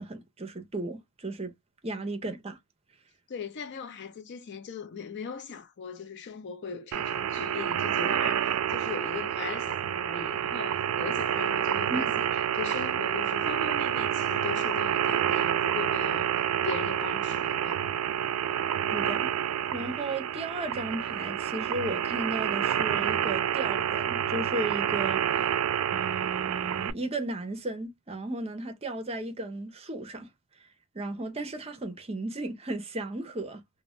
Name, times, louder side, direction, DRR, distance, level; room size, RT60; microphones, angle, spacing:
voice 1, 0.0-1.5 1.8-2.6 11.9-12.2 18.9-19.3 19.7-25.2 25.9-30.3 30.9-33.6, right 2 dB, 30° right, 0.6 m, -35 dB
voice 2, 3.3-17.8 25.4-25.5, left 6 dB, 55° left, 0.5 m, -39 dB
sound 1, 6.9-26.9, right 9 dB, 80° right, 0.3 m, -28 dB
2.5 x 2.1 x 3.1 m
head